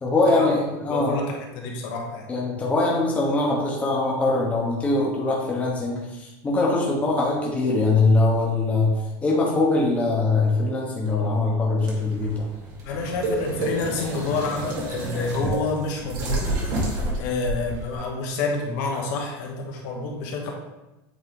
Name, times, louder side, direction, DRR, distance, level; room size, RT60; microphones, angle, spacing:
voice 1, 0.0-1.2 2.3-8.9 9.2-12.5, left 2 dB, 10° left, -3 dB, 1.0 m, -22 dB
voice 2, 0.9-2.3 12.8-20.5, left 3 dB, 60° left, 1 dB, 1.1 m, -29 dB
sound 1, 11.8-17.9, right 1 dB, 60° right, 1.6 m, -29 dB
8.3 x 3.2 x 3.8 m, 1.0 s
supercardioid pair, 165°, 12 cm